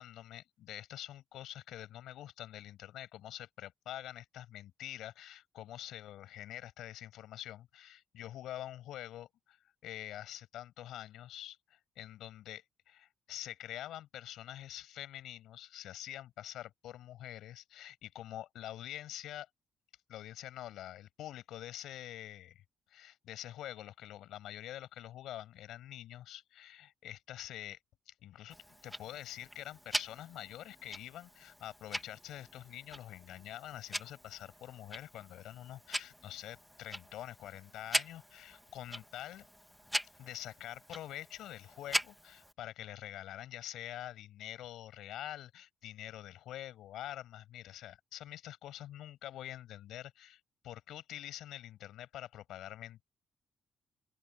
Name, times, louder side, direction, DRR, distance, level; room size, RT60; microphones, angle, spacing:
voice 1, 0.0-19.5 20.1-22.6 22.9-27.8 28.1-28.6 28.8-39.4 40.2-53.0, left 13 dB, 80° left, 6.4 m, -46 dB
Tick-tock, 28.5-42.5, equal, ahead, 2.1 m, -42 dB
open air
cardioid pair, 90°, 0 cm